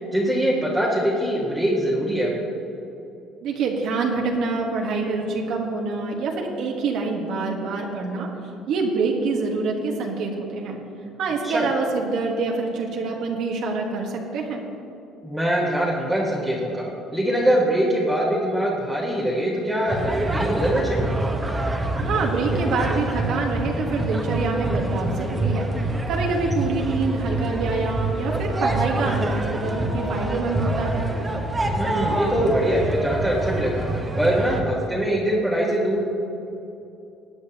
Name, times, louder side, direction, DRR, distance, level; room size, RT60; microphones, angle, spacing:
voice 1, 0.1-2.4 11.4-11.7 15.2-21.1 31.8-33.9 34.2-36.0, right 1 dB, ahead, -6 dB, 1.6 m, -23 dB
voice 2, 3.4-8.3 8.7-10.8 11.2-14.6 22.0-31.1, right 4 dB, 70° right, 0 dB, 1.5 m, -26 dB
sound 1, 19.9-34.6, right 1 dB, 15° right, 1.2 m, -26 dB
17.5 x 9.5 x 3.0 m, 2.9 s
cardioid pair, 105°, 0 cm